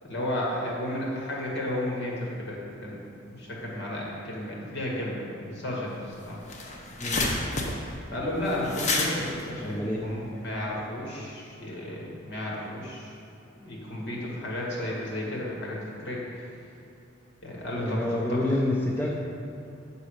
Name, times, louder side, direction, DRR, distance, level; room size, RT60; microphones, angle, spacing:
voice 1, 0.0-3.1 3.4-6.4 8.1-13.1 13.6-16.5 17.4-18.0 18.3-18.4, left 1 dB, 60° left, -3 dB, 1.8 m, -33 dB
sound 1, 6.0-6.1 6.3-10.6, left 2 dB, 35° left, 0.8 m, -30 dB
voice 2, 9.6-10.0 17.8-19.1, left 1 dB, 10° left, -3 dB, 0.5 m, -28 dB
7.6 x 4.1 x 6.4 m, 2.8 s
head